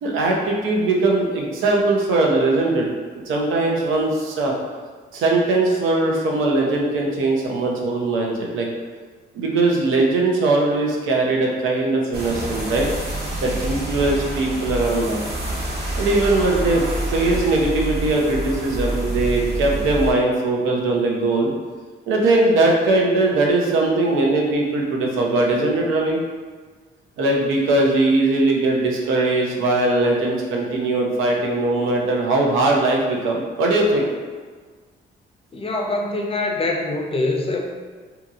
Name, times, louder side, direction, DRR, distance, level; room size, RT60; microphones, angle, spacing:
voice 1, 0.0-2.9 3.3-4.5 5.1-8.7 9.3-12.9 13.4-15.2 15.9-21.5 22.1-26.2 27.2-34.1, right 2 dB, 85° right, -1 dB, 0.6 m, -20 dB
sound 1, 12.1-20.1, right 1 dB, 55° right, 1.0 m, -27 dB
voice 2, 35.5-37.6, left 2 dB, 30° left, 1 dB, 0.5 m, -24 dB
2.8 x 2.7 x 2.4 m, 1.5 s
cardioid pair, 90°, 20 cm